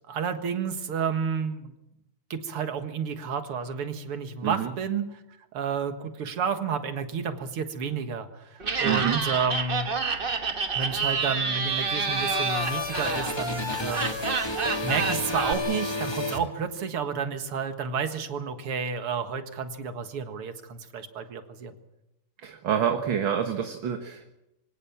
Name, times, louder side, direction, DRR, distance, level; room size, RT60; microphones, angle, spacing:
voice 1, 0.1-1.8 2.3-5.2 5.5-9.9 10.8-14.2 14.8-21.7, right 6 dB, 90° right, 8 dB, 2.5 m, -31 dB
voice 2, 4.4-4.7 8.8-9.2 22.4-24.3, right 9 dB, 65° right, 6 dB, 2.1 m, -27 dB
Laughter, 8.6-15.5, right 4 dB, 30° right, 1.1 m, -29 dB
sound 1, 11.5-17.1, left 3 dB, 15° left, 1.7 m, -32 dB
25.5 x 17.5 x 7.2 m, 0.91 s
omnidirectional pair, 2.4 m